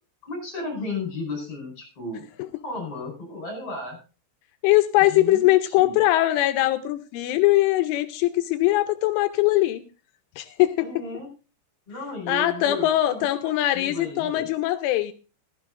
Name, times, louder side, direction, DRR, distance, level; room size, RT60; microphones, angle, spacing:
voice 1, 0.2-2.3 2.6-4.0 5.0-6.0 10.8-11.3 11.9-14.5, left 2 dB, 30° left, 2 dB, 5.5 m, -34 dB
voice 2, 4.6-9.8 10.4-11.0 12.3-15.1, left 15 dB, 80° left, 8 dB, 3.0 m, -21 dB
15.5 x 15.0 x 2.5 m, 0.33 s
omnidirectional pair, 5.8 m